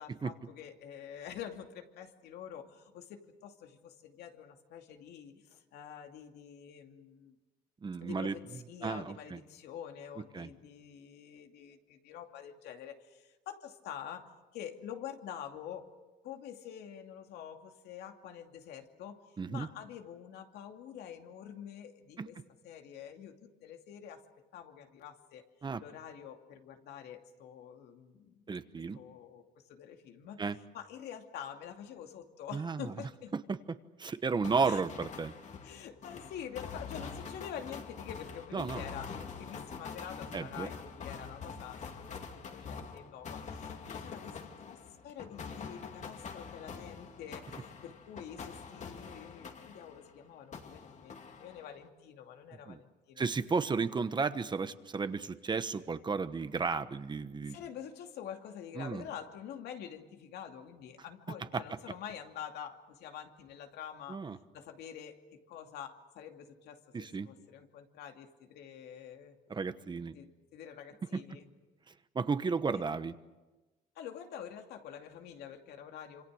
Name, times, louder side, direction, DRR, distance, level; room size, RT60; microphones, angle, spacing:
voice 1, 0.0-7.3 8.0-15.9 16.2-19.2 19.5-22.4 22.6-24.2 24.5-25.4 25.8-28.4 28.9-30.4 30.7-33.3 34.6-34.8 35.6-53.2 57.4-64.2 64.5-69.4 70.1-71.5 72.7-72.8 73.9-76.2, left 9 dB, 80° left, 4 dB, 2.6 m, -47 dB
voice 2, 7.8-8.3 8.8-9.4 10.3-10.5 19.4-19.7 22.2-22.3 25.6-25.8 28.5-29.0 30.4-30.6 32.5-32.9 33.3-33.6 34.0-35.3 38.5-38.8 40.3-40.7 52.7-52.8 53.2-57.6 58.8-59.0 61.5-61.6 64.1-64.4 66.9-67.3 69.5-70.2 71.1-71.2 72.1-73.1, right 4 dB, 25° right, 11 dB, 1.2 m, -33 dB
sound 1, 34.4-50.2 50.5-51.9, left 5 dB, 45° left, 2.5 m, -45 dB
27.0 x 25.5 x 6.5 m, 1.1 s
cardioid pair, 110°, 17 cm